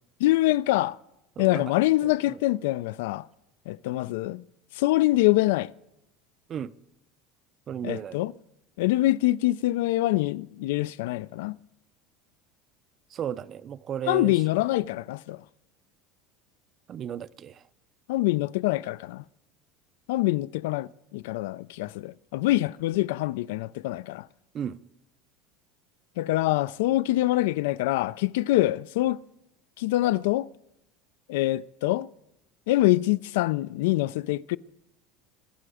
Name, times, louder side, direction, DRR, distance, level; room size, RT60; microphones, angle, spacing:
voice 1, 0.2-1.0 1.4-3.3 3.7-4.4 4.7-5.7 7.8-8.3 8.8-11.6 14.1-15.4 18.1-19.2 20.1-24.3 26.2-29.2 29.8-30.5 31.3-32.1 32.7-34.6, left 17 dB, 85° left, 0.4 m, -25 dB
voice 2, 2.0-2.4 6.5-6.7 7.7-8.2 13.1-14.4 16.9-17.6 24.5-24.8, right 9 dB, 30° right, 0.4 m, -34 dB
22.5 x 7.8 x 4.9 m
cardioid pair, 165°, 0 cm